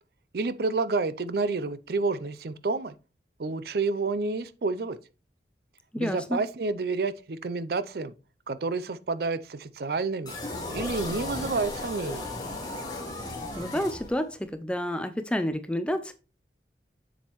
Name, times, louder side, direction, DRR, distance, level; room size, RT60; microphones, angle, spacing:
voice 1, 0.3-2.9 3.4-5.0 6.0-8.1 8.5-10.3 10.7-12.3, right 3 dB, 55° right, 0.5 m, -29 dB
voice 2, 5.9-6.4 13.5-16.1, equal, 5° left, 0.4 m, -29 dB
sound 1, 10.3-14.5, left 2 dB, 20° left, 1.9 m, -35 dB
7.3 x 7.2 x 3.0 m
head